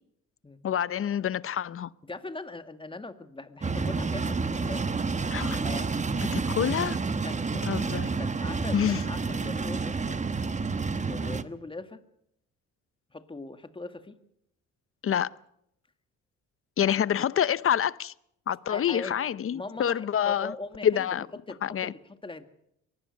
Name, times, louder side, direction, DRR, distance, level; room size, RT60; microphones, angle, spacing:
voice 1, 0.6-1.9 5.3-5.6 6.3-7.0 7.7-8.1 8.7-9.0 15.0-15.3 16.8-18.1 18.5-20.5 20.8-21.3 21.6-21.9, left 9 dB, 45° left, 0.8 m, -27 dB
voice 2, 2.1-4.9 5.6-5.9 7.2-7.7 8.0-10.2 11.0-12.0 13.1-14.2 16.9-17.0 18.7-19.2 19.5-21.1 21.5-22.5, left 3 dB, 15° left, 2.0 m, -40 dB
sound 1, 3.6-11.4, right 4 dB, 25° right, 1.2 m, -29 dB
24.0 x 19.0 x 6.6 m
cardioid pair, 90°, 30 cm